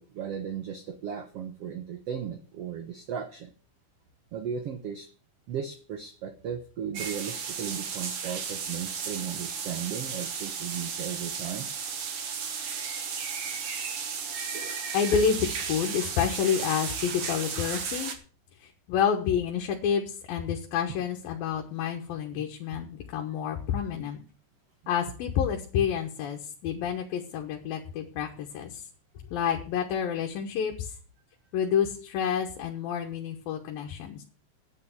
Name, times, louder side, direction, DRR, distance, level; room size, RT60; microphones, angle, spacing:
voice 1, 0.0-3.5 4.3-5.1 5.5-11.7 21.3-21.4 22.4-22.8, right 8 dB, 70° right, 8 dB, 1.4 m, -36 dB
sound 1, 6.9-18.1, right 6 dB, 50° right, 1.9 m, -34 dB
voice 2, 14.9-18.1 18.6-24.2 24.9-28.8 29.3-30.9 31.5-34.2, left 8 dB, 85° left, 2 dB, 3.0 m, -29 dB
9.4 x 9.3 x 7.1 m, 0.41 s
omnidirectional pair, 4.0 m